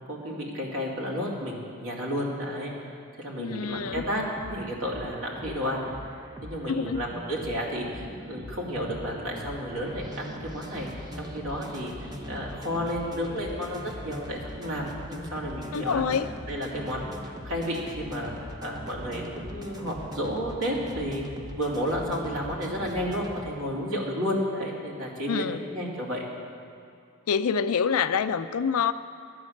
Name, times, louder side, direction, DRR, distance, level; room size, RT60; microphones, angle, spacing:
voice 1, 0.1-4.2 4.5-5.8 6.4-16.0 16.5-21.2 21.5-26.3, equal, 85° right, -3 dB, 2.6 m, -32 dB
voice 2, 3.4-4.0 6.7-7.0 15.7-16.3 25.3-25.6 27.3-28.9, left 6 dB, 80° left, 12 dB, 0.4 m, -26 dB
sound 1, 3.6-23.5, equal, 20° right, 0.8 m, -41 dB
12.5 x 9.4 x 6.4 m, 2.5 s
head